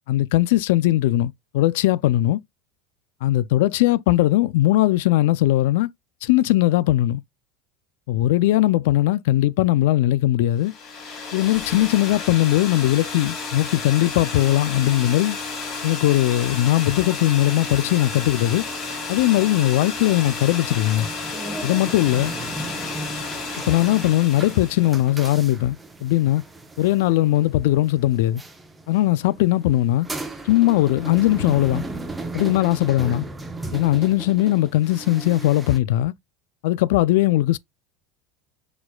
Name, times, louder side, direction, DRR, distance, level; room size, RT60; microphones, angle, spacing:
voice 1, 0.1-2.4 3.2-5.9 6.2-7.2 8.1-10.7 11.3-15.4 15.8-18.6 19.1-21.1 21.6-22.3 23.7-26.4 26.8-28.4 28.9-30.1 30.4-31.8 32.3-33.3 33.7-36.1 36.6-37.6, left 15 dB, 75° left, 0.3 m, -19 dB
sound 1, 10.6-25.1, left 4 dB, 35° left, 2.0 m, -32 dB
sound 2, 17.3-35.8, right 2 dB, 10° right, 0.8 m, -37 dB
4.5 x 4.2 x 2.2 m
supercardioid pair, 140°, 0 cm